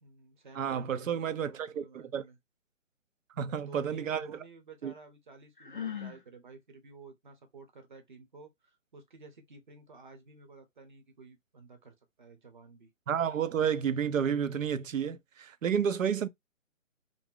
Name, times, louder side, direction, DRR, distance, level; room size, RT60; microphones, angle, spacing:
voice 1, 0.0-2.4 3.3-12.9, right 3 dB, 40° right, 0.8 m, -53 dB
voice 2, 0.6-2.2 3.4-4.3 4.8-4.9 13.1-16.3, right 8 dB, 80° right, 0.6 m, -31 dB
Sigh, 5.6-6.2, left 8 dB, 40° left, 0.4 m, -38 dB
2.5 x 2.1 x 3.5 m
hypercardioid pair, 160°, 39 cm